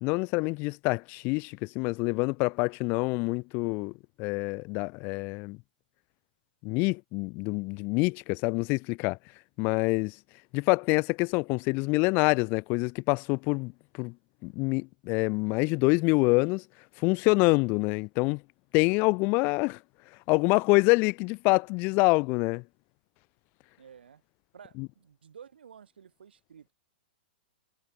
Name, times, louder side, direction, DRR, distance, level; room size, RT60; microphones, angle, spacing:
voice 1, 0.0-3.9 4.2-5.6 6.6-9.2 9.6-10.2 10.5-13.7 14.0-14.1 14.4-16.6 17.0-18.4 18.7-19.8 20.3-22.6 24.8-24.9, left 28 dB, 40° left, 0.7 m, -26 dB
voice 2, 23.8-24.2 24.5-26.7, right 7 dB, 90° right, 5.5 m, -52 dB
hypercardioid pair, 135°, 5 cm